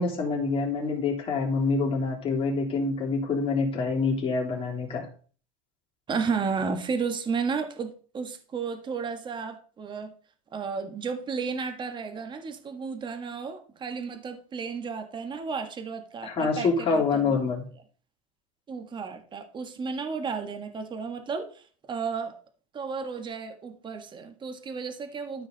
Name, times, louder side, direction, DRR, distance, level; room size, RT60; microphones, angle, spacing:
voice 1, 0.0-5.1 16.2-17.6, left 4 dB, 30° left, -1 dB, 3.3 m, -26 dB
voice 2, 6.1-10.1 10.5-17.6 18.7-22.3 22.7-25.5, right 5 dB, 25° right, 7 dB, 1.5 m, -33 dB
13.0 x 5.1 x 4.0 m, 0.42 s
supercardioid pair, 115°, 18 cm